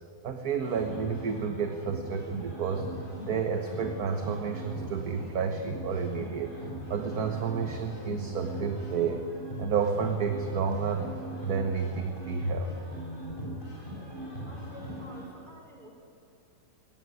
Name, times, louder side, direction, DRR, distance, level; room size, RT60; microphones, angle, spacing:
voice 1, 0.2-2.9 3.3-6.5 6.9-9.2 9.6-11.1 11.4-12.7, right 6 dB, 55° right, 6 dB, 1.7 m, -30 dB
sound 1, 0.6-15.3, equal, 25° left, 7.0 m, -40 dB
voice 2, 14.5-15.9, equal, 25° right, 2 dB, 4.2 m, -50 dB
21.5 x 18.5 x 9.6 m, 2.7 s
omnidirectional pair, 2.0 m